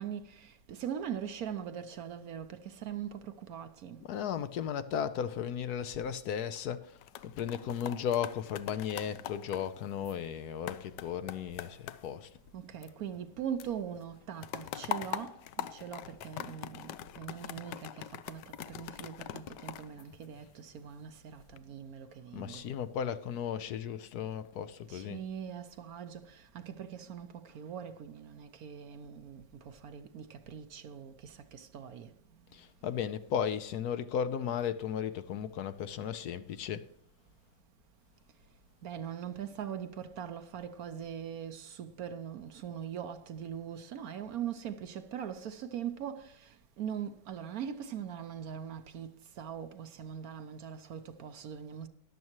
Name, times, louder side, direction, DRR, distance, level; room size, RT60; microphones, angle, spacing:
voice 1, 0.0-4.0 12.5-22.6 24.9-32.1 38.8-51.9, right 8 dB, 65° right, 1.1 m, -41 dB
voice 2, 4.0-7.0 7.2-12.3 22.3-25.2 32.5-36.9, left 8 dB, 70° left, 1.2 m, -35 dB
sound 1, 6.8-13.3 13.6-20.8 21.3-21.6, left 12 dB, 85° left, 1.3 m, -43 dB
14.0 x 11.0 x 3.0 m
omnidirectional pair, 1.8 m